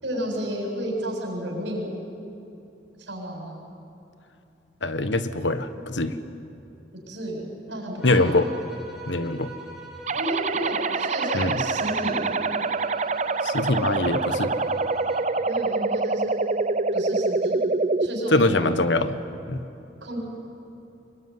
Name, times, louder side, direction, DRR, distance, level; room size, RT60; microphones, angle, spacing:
voice 1, 0.0-1.9 3.1-3.6 7.1-8.3 10.1-12.2 15.4-16.3 16.9-17.6 18.0-18.6 20.0-20.2, right 1 dB, 80° right, 0 dB, 7.3 m, -31 dB
voice 2, 4.8-6.2 8.0-8.5 9.1-9.5 11.3-11.6 13.4-14.5 18.3-19.2 19.5-19.6, left 2 dB, 85° left, 11 dB, 1.4 m, -23 dB
sound 1, 8.0-15.4, right 1 dB, 5° right, 5.3 m, -43 dB
sound 2, 10.1-18.1, right 3 dB, 40° right, 0.6 m, -25 dB
25.0 x 22.0 x 9.8 m, 2.8 s
head